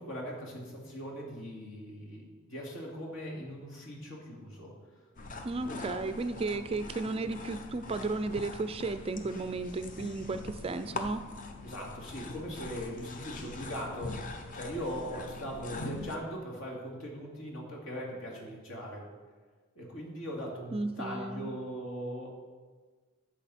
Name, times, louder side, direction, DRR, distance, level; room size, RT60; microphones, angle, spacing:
voice 1, 0.0-4.7 5.6-5.9 11.6-14.2 14.5-19.1 19.8-22.3, equal, 65° left, -2 dB, 2.6 m, -40 dB
sound 1, 5.2-16.2, left 2 dB, 40° left, 0.7 m, -43 dB
voice 2, 5.4-11.2 20.7-21.5, right 3 dB, 25° right, 11 dB, 0.3 m, -34 dB
12.5 x 7.5 x 4.2 m, 1.4 s
head